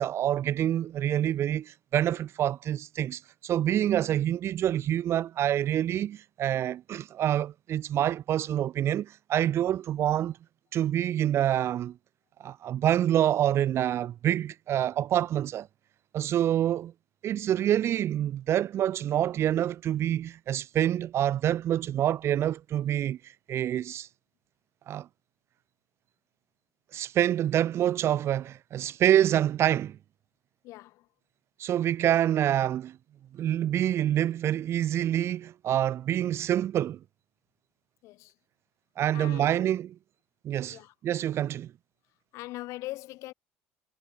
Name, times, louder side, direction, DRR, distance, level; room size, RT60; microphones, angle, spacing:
voice 1, 0.0-10.4 10.7-12.0 12.4-15.7 16.1-16.9 17.2-24.1 24.9-25.1 26.9-30.0 31.6-33.0 33.3-37.0 39.0-39.9 40.4-41.7, right 11 dB, 50° right, 1.7 m, -27 dB
voice 2, 30.6-31.1 38.0-38.3 39.1-39.7 40.7-40.9 42.3-43.3, left 18 dB, 65° left, 6.3 m, -41 dB
hypercardioid pair, 65°, 6 cm